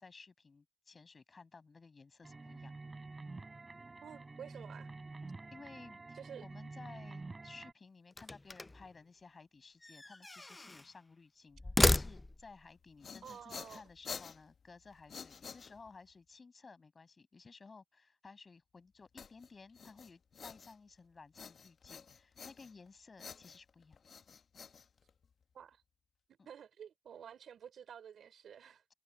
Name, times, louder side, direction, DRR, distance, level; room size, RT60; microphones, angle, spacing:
voice 1, 0.0-2.7 5.5-24.0 26.4-26.5, left 4 dB, 30° left, 6.3 m, -56 dB
sound 1, 2.2-7.7, right 3 dB, 25° right, 6.1 m, -48 dB
voice 2, 4.0-4.9 6.1-6.4 13.2-13.8 25.5-25.8 26.3-28.8, right 8 dB, 60° right, 4.3 m, -51 dB
sound 2, 8.1-8.9 9.8-10.9 11.5-12.6, left 2 dB, 15° left, 0.4 m, -33 dB
sound 3, 12.7-16.1 19.2-21.0 21.3-22.9 23.2-25.4, left 6 dB, 45° left, 1.2 m, -50 dB
cardioid pair, 90°, 0 cm